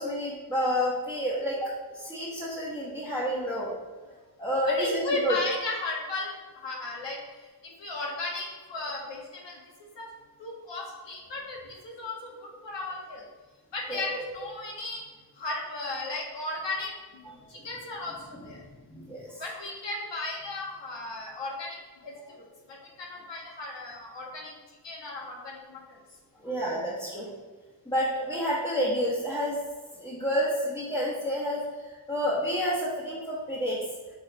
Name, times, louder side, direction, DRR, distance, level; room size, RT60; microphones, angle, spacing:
voice 1, 0.0-3.7 4.4-5.4 13.9-14.0 18.3-18.4 18.9-19.4 26.4-27.3 27.9-29.6 30.0-31.6 32.1-33.8, equal, 10° left, -9 dB, 0.9 m, -29 dB
voice 2, 4.8-6.3 6.5-7.2 7.6-9.6 10.0-10.1 10.4-11.6 11.8-12.3 12.6-13.2 13.7-15.0 15.4-18.6 19.4-21.8 22.0-24.5 24.8-26.0, left 2 dB, 85° left, -2 dB, 1.1 m, -35 dB
5.6 x 3.8 x 2.2 m, 1.3 s
wide cardioid pair, 60°, 42 cm